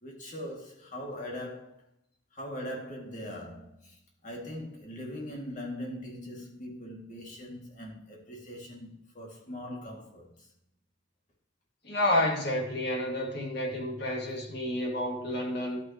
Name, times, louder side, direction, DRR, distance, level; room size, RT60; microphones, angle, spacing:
voice 1, 0.0-1.8 2.3-10.5, left 1 dB, 40° left, 2.1 m, -41 dB
voice 2, 11.8-15.8, left 1 dB, 55° left, 2.1 m, -30 dB
11.5 x 9.0 x 2.9 m
head